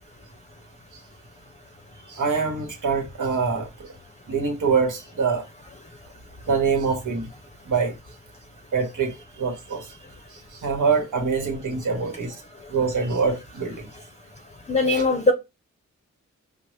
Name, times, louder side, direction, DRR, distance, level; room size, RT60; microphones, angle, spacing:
voice 1, 2.1-3.9 4.3-5.4 6.5-7.3 7.6-8.0 8.7-9.9 10.5-12.3 12.7-13.9 14.9-15.0, right 5 dB, 90° right, 1.1 m, -24 dB
voice 2, 14.7-15.3, left 2 dB, 25° left, 0.5 m, -20 dB
5.1 x 2.0 x 3.1 m
cardioid pair, 60°, 30 cm